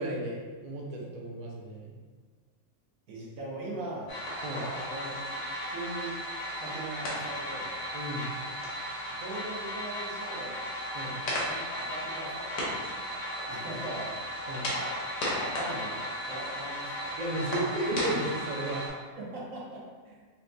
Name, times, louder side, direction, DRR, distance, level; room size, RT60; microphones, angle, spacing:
voice 1, 0.0-1.9 4.4-4.7 7.9-8.3 10.9-11.2 14.5-14.6 17.2-18.8, right 1 dB, 50° right, -2 dB, 0.5 m, -33 dB
voice 2, 3.1-4.1 4.9-5.1 5.7-6.1 6.6-7.7 9.2-10.6 11.4-13.1 13.5-14.1 15.6-17.1 19.2-19.8, right 2 dB, 85° right, -4 dB, 1.3 m, -40 dB
sound 1, 4.1-18.9, equal, 80° left, 1.4 m, -35 dB
5.5 x 2.2 x 2.6 m, 1.5 s
omnidirectional pair, 1.4 m